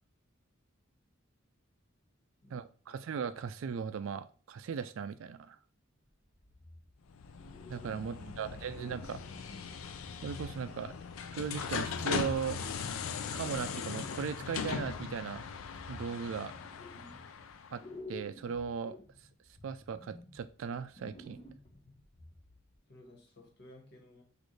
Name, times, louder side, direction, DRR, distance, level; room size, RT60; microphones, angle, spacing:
voice 1, 2.5-5.6 7.7-9.2 10.2-10.9 11.3-13.0 13.3-15.4 15.9-16.5 17.7-17.8 18.1-19.0 19.6-21.4, right 6 dB, 70° right, 13 dB, 0.3 m, -38 dB
sound 1, 6.3-7.1 7.4-8.4 8.7-11.6 12.4-14.8 15.1-17.5 17.8-22.8, left 2 dB, 30° left, 0.8 m, -53 dB
sound 2, 7.1-17.8, left 6 dB, 80° left, 0.4 m, -39 dB
voice 2, 8.1-8.6 22.9-24.2, equal, 55° left, 0 dB, 1.4 m, -55 dB
6.2 x 2.5 x 3.2 m, 0.40 s
head